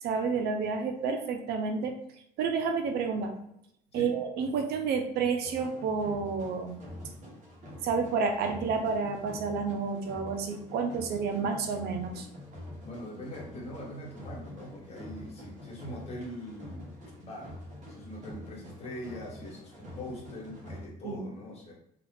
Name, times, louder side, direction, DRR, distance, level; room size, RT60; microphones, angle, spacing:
voice 1, 0.0-1.9 2.4-3.3 3.9-6.8 7.8-12.3 21.0-21.3, right 5 dB, 70° right, 5 dB, 0.5 m, -30 dB
sound 1, 5.4-20.9, left 1 dB, 45° right, 0.9 m, -46 dB
voice 2, 12.8-17.6 17.9-21.7, equal, 40° left, -2 dB, 1.1 m, -42 dB
2.3 x 2.3 x 3.3 m, 0.77 s
cardioid pair, 110°, 17 cm